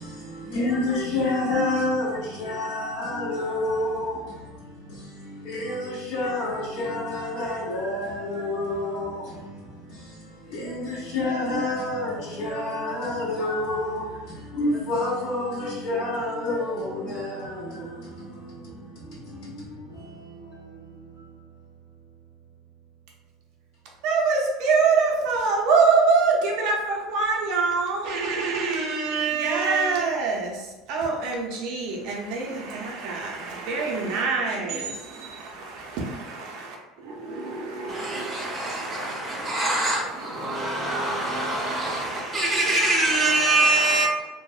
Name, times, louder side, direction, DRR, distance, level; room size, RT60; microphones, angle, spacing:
voice 1, 0.0-21.3, left 2 dB, 60° left, 1.4 m, -29 dB
voice 2, 24.0-39.1 39.6-43.2, right 4 dB, 55° right, 0.5 m, -26 dB
voice 3, 37.9-44.1, right 2 dB, 10° right, 0.5 m, -24 dB
2.7 x 2.0 x 2.3 m
cardioid pair, 160°, 0 cm